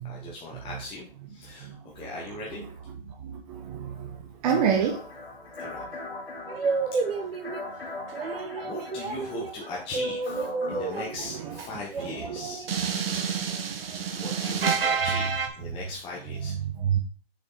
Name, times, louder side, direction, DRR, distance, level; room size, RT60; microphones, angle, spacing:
voice 1, 0.0-2.6 5.6-5.8 6.9-7.3 8.6-12.7 14.2-16.5, left 3 dB, 15° left, -3 dB, 1.3 m, -39 dB
voice 2, 3.2-4.1 4.4-5.0 14.8-15.1 16.8-17.0, right 7 dB, 40° right, 1 dB, 1.2 m, -26 dB
sound 1, 4.5-11.1, left 3 dB, 85° left, 3.8 m, -40 dB
sound 2, 6.5-7.7 8.1-15.5, right 5 dB, 70° right, 1.4 m, -30 dB
6.6 x 5.7 x 4.0 m, 0.42 s
hypercardioid pair, 135°, 30 cm